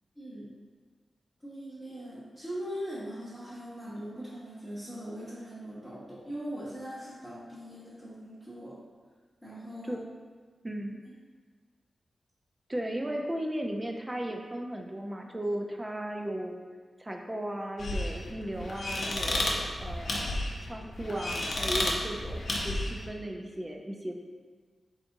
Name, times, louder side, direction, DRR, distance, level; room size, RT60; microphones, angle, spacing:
voice 1, 0.2-0.5 1.4-8.8 9.4-10.0 11.0-11.1, equal, 5° left, -12 dB, 0.9 m, -40 dB
voice 2, 10.6-11.0 12.7-16.6 17.0-24.1, right 1 dB, 15° right, 2 dB, 0.4 m, -36 dB
sound 1, 17.8-23.0, left 1 dB, 55° left, 0.6 m, -32 dB
4.7 x 3.8 x 2.6 m, 1.5 s
wide cardioid pair, 175°, 0 cm